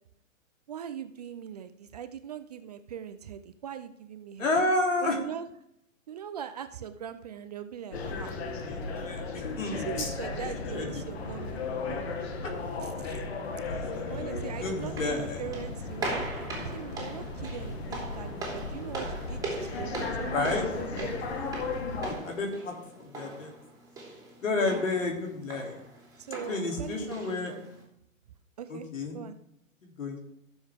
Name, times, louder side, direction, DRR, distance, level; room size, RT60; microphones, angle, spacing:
voice 1, 0.7-4.5 5.0-5.5 6.1-8.6 9.7-11.6 11.9-12.3 12.8-13.2 14.1-21.2 24.6-24.9 26.2-27.7 28.6-28.9 29.1-29.4, right 9 dB, 30° right, 11 dB, 0.4 m, -41 dB
voice 2, 4.4-5.2 8.7-10.1 10.7-10.9 12.4-12.5 13.7-15.4 20.3-20.7 22.1-23.5 24.4-25.9 26.5-27.5 28.7-29.2 29.8-30.2, left 2 dB, 70° left, 1 dB, 3.1 m, -31 dB
sound 1, 7.9-22.1, left 4 dB, 50° left, 1.5 m, -35 dB
sound 2, 14.8-27.8, right 2 dB, 10° right, 2.9 m, -40 dB
15.0 x 7.1 x 3.6 m, 0.76 s
figure-of-eight pair, 120°, 40 cm